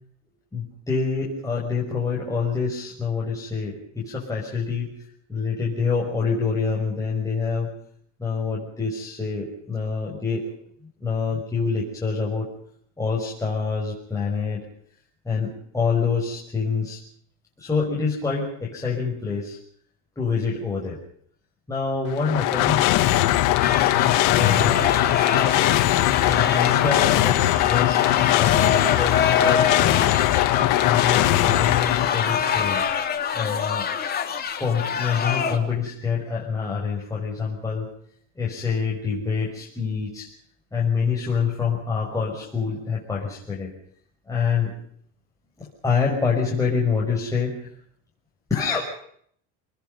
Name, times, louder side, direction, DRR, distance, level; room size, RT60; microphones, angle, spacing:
voice 1, 0.5-4.9 5.3-7.7 8.2-10.4 11.0-12.5 13.0-14.6 15.2-17.0 17.6-19.6 20.2-21.0 21.7-22.9 24.2-24.8 26.2-30.1 30.8-32.8 33.3-33.9 34.6-37.9 38.4-40.3 40.7-43.7 44.3-44.7 45.6-47.7 48.5-48.9, left 5 dB, 10° left, -4 dB, 6.1 m, -26 dB
sound 1, 22.1-32.9, left 15 dB, 60° left, 2.0 m, -20 dB
sound 2, 23.6-35.6, left 7 dB, 25° left, 3.3 m, -26 dB
28.5 x 20.5 x 5.4 m, 0.65 s
cardioid pair, 140°, 35 cm